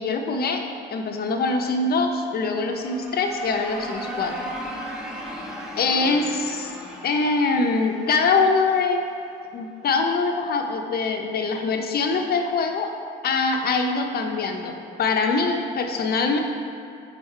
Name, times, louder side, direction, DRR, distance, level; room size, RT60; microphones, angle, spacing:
voice 1, 0.0-4.4 5.8-6.7 7.0-9.0 9.5-12.9 13.2-16.4, left 4 dB, 50° left, 4 dB, 0.6 m, -23 dB
sound 1, 2.4-9.2, equal, 5° right, 0.8 m, -37 dB
5.6 x 4.0 x 4.4 m, 2.5 s
cardioid pair, 90°, 20 cm